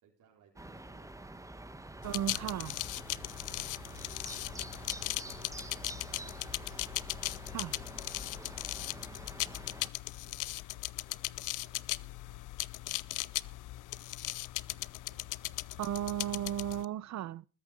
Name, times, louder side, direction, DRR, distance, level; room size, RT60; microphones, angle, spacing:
voice 1, 0.0-1.7 2.7-3.0 3.8-6.7 7.4-9.6 10.2-12.6 13.1-16.3, right 6 dB, 85° right, 4.0 m, -66 dB
sound 1, 0.6-9.9, right 2 dB, 10° right, 1.3 m, -47 dB
sound 2, 2.0-16.8, left 18 dB, 90° left, 0.6 m, -38 dB
voice 2, 2.0-2.7 7.5-7.7 15.8-17.5, right 11 dB, 65° right, 0.7 m, -35 dB
20.0 x 8.9 x 5.1 m
cardioid pair, 90°, 30 cm